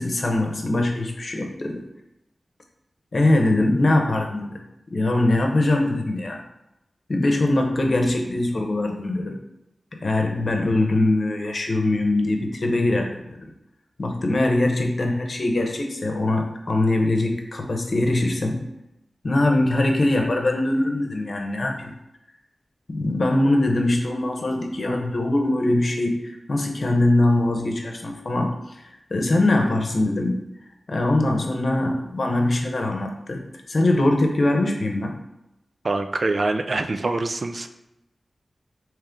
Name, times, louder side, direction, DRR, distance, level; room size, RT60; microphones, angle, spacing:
voice 1, 0.0-1.8 3.1-4.6 4.9-6.4 7.1-9.4 10.0-13.5 14.0-18.6 19.2-21.9 22.9-28.8 29.1-30.4 30.9-35.1, left 2 dB, 65° left, 2 dB, 0.7 m, -22 dB
voice 2, 35.8-37.7, right 2 dB, 55° right, 7 dB, 0.3 m, -24 dB
3.7 x 3.1 x 3.5 m, 0.87 s
cardioid pair, 45°, 0 cm